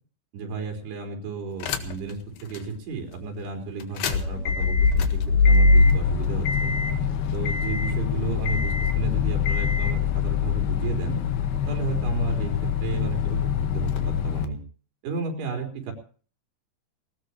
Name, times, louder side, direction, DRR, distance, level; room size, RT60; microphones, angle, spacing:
voice 1, 0.3-5.2 5.5-6.7 7.3-11.2 11.7-12.5 12.8-13.4 13.7-14.6 15.0-15.9, right 5 dB, 85° right, 3 dB, 6.2 m, -33 dB
sound 1, 1.6-2.1 2.5-2.6 3.8-14.5, left 5 dB, 80° left, 3.6 m, -23 dB
19.5 x 19.5 x 3.1 m, 0.42 s
omnidirectional pair, 4.6 m